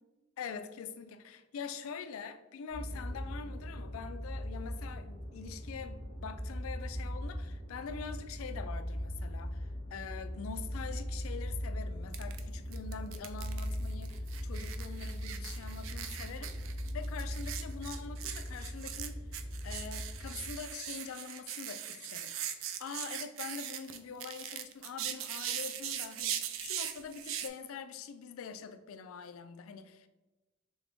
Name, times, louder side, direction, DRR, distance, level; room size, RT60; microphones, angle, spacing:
voice 1, 0.4-16.6 16.9-19.3 19.6-30.1, left 6 dB, 80° left, 0.4 m, -44 dB
sound 1, 2.7-20.5, equal, 40° right, 1.3 m, -39 dB
sound 2, 12.1-12.4 12.7-27.5, right 10 dB, 65° right, 0.4 m, -40 dB
3.5 x 3.4 x 3.9 m
head